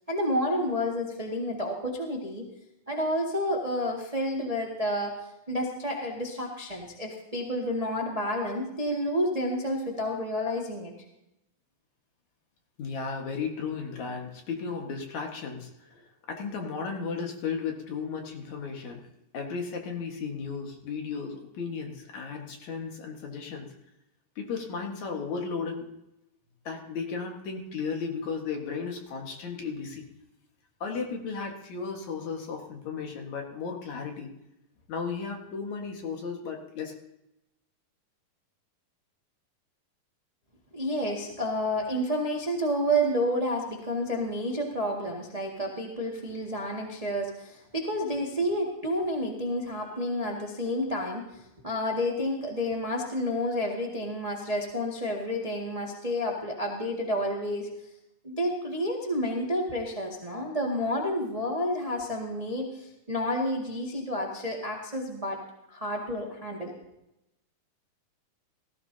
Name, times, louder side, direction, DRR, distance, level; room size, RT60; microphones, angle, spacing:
voice 1, 0.1-2.4 2.9-5.1 5.5-10.9 40.7-57.7 58.2-65.4 65.7-66.7, equal, 25° right, -1 dB, 0.8 m, -30 dB
voice 2, 12.8-19.0 19.3-23.7 24.4-25.9 26.6-30.1 30.8-34.3 34.9-37.0, left 5 dB, 60° left, 2 dB, 2.7 m, -35 dB
19.0 x 14.5 x 2.8 m, 0.88 s
omnidirectional pair, 4.0 m